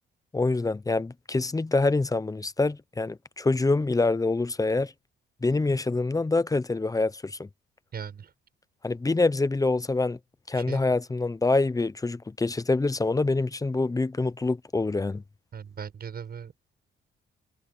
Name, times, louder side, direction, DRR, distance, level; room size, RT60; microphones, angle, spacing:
voice 1, 0.3-4.9 5.4-7.5 8.8-10.2 10.5-15.2, left 3 dB, 15° left, 0.9 m, -25 dB
voice 2, 7.9-8.3 10.5-11.0 15.5-16.5, right 7 dB, 50° right, 7.6 m, -39 dB
cardioid pair, 90°, 20 cm